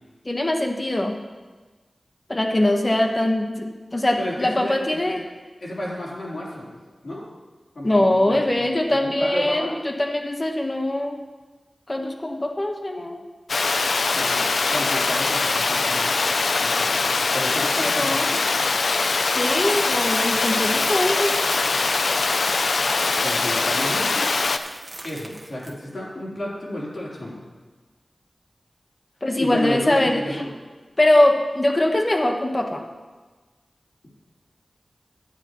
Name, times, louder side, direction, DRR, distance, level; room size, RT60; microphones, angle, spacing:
voice 1, 0.2-1.2 2.3-5.2 7.8-11.2 11.9-13.2 17.8-18.3 19.1-21.4 29.2-30.2 31.0-32.8, left 1 dB, 35° left, 3 dB, 1.2 m, -22 dB
voice 2, 4.2-5.2 5.6-6.8 7.0-7.2 7.7-9.7 14.1-16.3 16.6-18.4 23.2-24.4 25.0-27.4 29.4-30.5, left 1 dB, 65° left, -7 dB, 3.6 m, -32 dB
Water, 13.5-24.6, left 4 dB, 90° left, 0.4 m, -22 dB
Coin (dropping), 18.6-25.7, right 1 dB, 35° right, 1.2 m, -37 dB
13.5 x 9.6 x 3.1 m, 1.3 s
cardioid pair, 40°, 0 cm